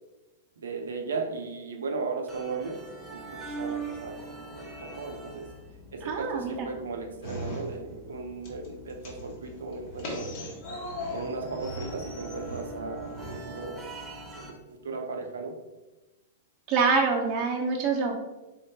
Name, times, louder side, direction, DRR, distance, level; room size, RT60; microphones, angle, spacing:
voice 1, 0.6-2.8 3.1-5.5 5.9-10.3 11.1-13.8 14.4-15.6, right 4 dB, 85° right, 3 dB, 0.6 m, -36 dB
sound 1, 2.3-14.5, right 3 dB, 20° right, 0.9 m, -43 dB
voice 2, 6.0-6.7 16.7-18.2, right 4 dB, 40° right, -2 dB, 0.6 m, -26 dB
sound 2, 7.2-8.2 8.4-13.4, equal, 55° left, 1.2 m, -38 dB
3.6 x 3.5 x 2.7 m, 1.1 s
hypercardioid pair, 125°, 0 cm